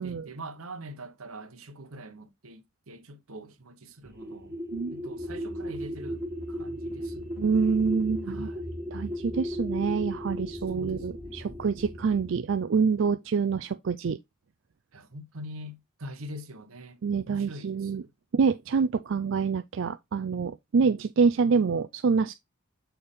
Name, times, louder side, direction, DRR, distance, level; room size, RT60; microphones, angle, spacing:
voice 1, 0.0-4.6 4.9-7.3 8.3-8.8 10.5-11.7 14.9-18.1, right 1 dB, 90° right, 1.1 m, -44 dB
sound 1, 4.0-12.4, equal, 10° right, 1.5 m, -36 dB
voice 2, 7.4-8.5 8.9-14.2 17.0-18.0 18.3-22.3, right 5 dB, 60° right, 0.4 m, -26 dB
6.8 x 4.4 x 3.6 m
head